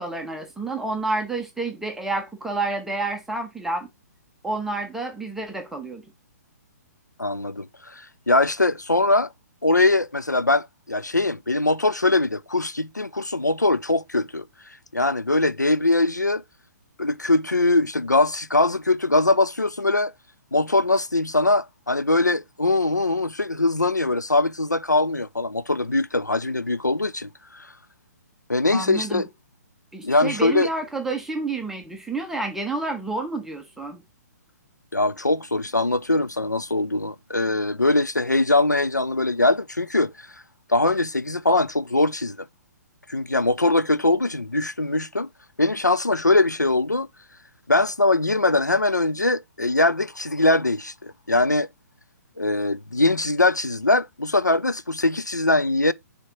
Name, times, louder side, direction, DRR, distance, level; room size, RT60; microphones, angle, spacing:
voice 1, 0.0-3.9 4.4-6.0 28.7-29.2 29.9-34.0, right 2 dB, 5° right, 0.8 m, -29 dB
voice 2, 7.2-9.3 9.6-14.5 14.9-16.4 17.0-20.1 20.5-27.7 28.5-29.3 30.0-30.7 34.9-40.4 40.7-42.5 43.1-45.3 45.6-47.1 47.7-51.7 52.4-55.9, left 2 dB, 90° left, 0.5 m, -22 dB
6.7 x 3.6 x 4.3 m
figure-of-eight pair, 125°, 9 cm